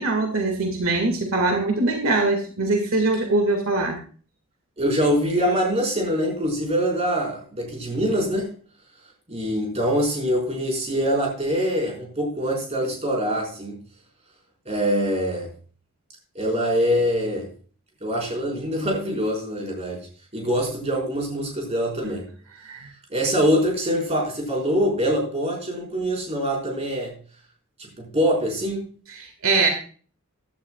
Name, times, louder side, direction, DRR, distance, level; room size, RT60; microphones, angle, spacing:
voice 1, 0.0-4.0 22.0-22.1 22.6-22.9 29.1-29.7, right 3 dB, 75° right, 3 dB, 2.0 m, -22 dB
voice 2, 4.8-8.5 9.3-13.8 14.6-15.5 16.3-17.5 18.0-20.0 20.3-22.3 23.1-27.1 28.0-28.8, equal, 30° right, -1 dB, 4.7 m, -24 dB
15.5 x 11.0 x 2.4 m, 0.42 s
head